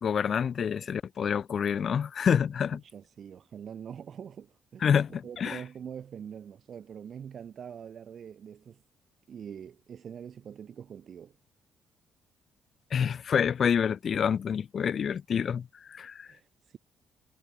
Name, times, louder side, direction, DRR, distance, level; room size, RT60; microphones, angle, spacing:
voice 1, 0.0-2.8 4.8-5.6 12.9-16.3, left 7 dB, 55° left, 0.9 m, -27 dB
voice 2, 2.8-4.9 5.2-8.8 9.3-11.3 16.2-16.8, right 8 dB, 55° right, 1.7 m, -44 dB
cardioid pair, 90°, 0 cm